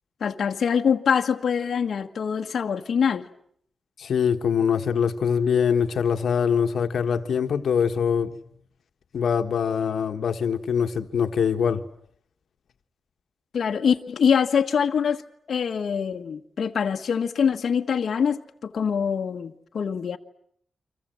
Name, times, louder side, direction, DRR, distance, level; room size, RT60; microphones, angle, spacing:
voice 1, 0.2-3.3 13.5-15.2 15.5-20.2, left 7 dB, 60° left, 1.4 m, -24 dB
voice 2, 4.0-8.4 9.1-11.8, left 7 dB, 80° left, 1.4 m, -23 dB
30.0 x 25.0 x 7.7 m
wide cardioid pair, 180°, 0 cm